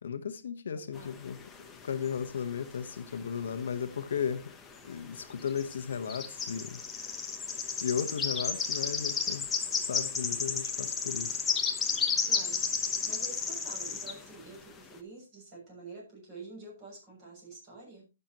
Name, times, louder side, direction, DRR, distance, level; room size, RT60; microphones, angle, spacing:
voice 1, 0.0-4.5 4.8-6.8 7.5-11.5, left 7 dB, 65° left, 1.1 m, -35 dB
voice 2, 0.7-1.2 12.2-12.7 13.0-18.0, right 3 dB, 25° right, 6.7 m, -48 dB
sound 1, 1.0-2.7 2.9-4.2 4.5-4.7 5.3-14.2, left 5 dB, 10° left, 0.9 m, -32 dB
18.0 x 6.8 x 2.9 m
hypercardioid pair, 170°, 0 cm